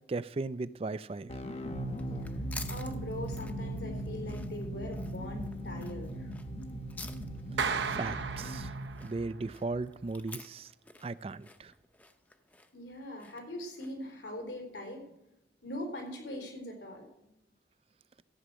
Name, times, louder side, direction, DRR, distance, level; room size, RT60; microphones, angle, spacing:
voice 1, 0.1-1.3 7.8-8.7 9.0-10.7 11.0-11.7, right 3 dB, 30° right, 0.3 m, -37 dB
sound 1, 1.3-10.0, right 1 dB, 35° left, 1.0 m, -39 dB
sound 2, 1.9-14.1, left 2 dB, 10° left, 0.6 m, -50 dB
voice 2, 2.2-6.3 12.7-15.1 15.6-17.3, left 1 dB, 85° left, 4.0 m, -42 dB
Clapping, 7.6-9.3, right 6 dB, 85° right, 0.8 m, -34 dB
14.0 x 8.7 x 6.2 m
head